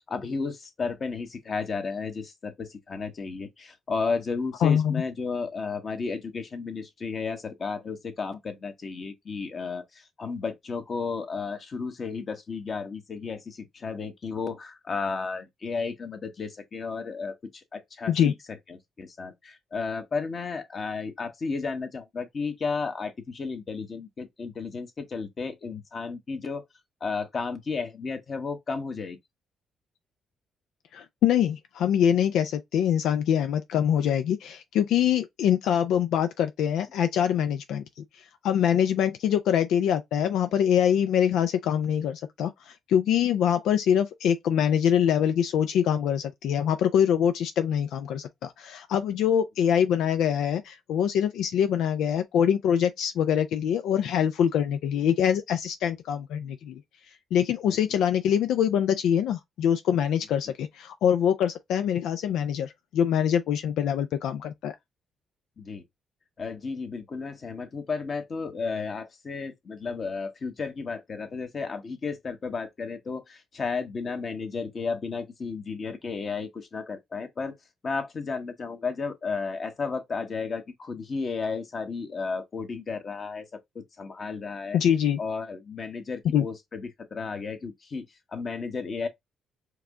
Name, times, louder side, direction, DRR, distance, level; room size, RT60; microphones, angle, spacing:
voice 1, 0.1-18.3 18.7-26.6 27.0-29.2 57.7-57.8 65.6-65.8 66.4-77.5 77.8-83.5 83.7-84.8 85.2-89.1, left 4 dB, 45° left, 1.2 m, -33 dB
voice 2, 4.6-5.0 18.1-18.3 30.9-37.8 38.4-56.8 57.3-64.7 84.7-85.2 86.3-86.4, left 9 dB, 80° left, 0.4 m, -24 dB
4.7 x 2.3 x 3.6 m
cardioid pair, 90°, 0 cm